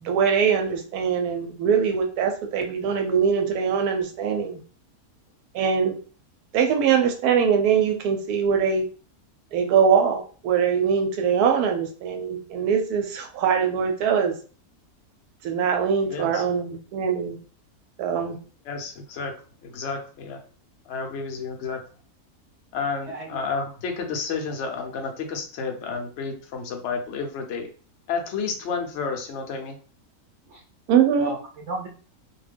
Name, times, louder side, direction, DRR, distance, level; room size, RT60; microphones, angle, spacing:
voice 1, 0.0-4.6 5.5-6.0 6.5-8.9 9.5-14.3 15.4-17.4 18.0-18.4 30.9-31.3, right 7 dB, 90° right, 4 dB, 1.1 m, -22 dB
voice 2, 16.1-16.4 18.7-19.3 19.6-20.4 20.9-21.8 22.7-27.7 28.1-29.8, left 5 dB, 65° left, 3 dB, 0.7 m, -31 dB
voice 3, 23.1-23.7 30.5-30.6 31.2-31.9, right 2 dB, 65° right, 0 dB, 0.8 m, -34 dB
2.5 x 2.2 x 3.3 m, 0.39 s
omnidirectional pair, 1.6 m